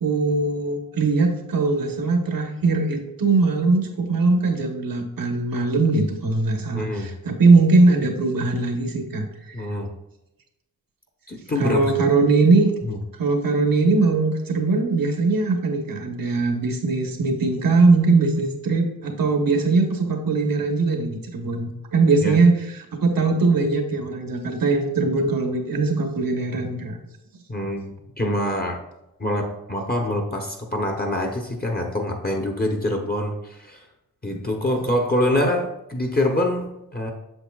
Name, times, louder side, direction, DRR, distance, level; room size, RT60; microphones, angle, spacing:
voice 1, 0.0-9.5 11.6-12.7 13.2-22.6 23.0-27.0, right 3 dB, 80° right, 4 dB, 1.2 m, -20 dB
voice 2, 6.7-7.1 9.5-9.9 11.3-12.0 12.8-13.0 22.2-22.4 27.5-28.8 29.2-33.9 34.2-37.1, left 1 dB, 25° left, 2 dB, 0.8 m, -25 dB
7.9 x 6.8 x 2.4 m, 0.89 s
wide cardioid pair, 105°, 34 cm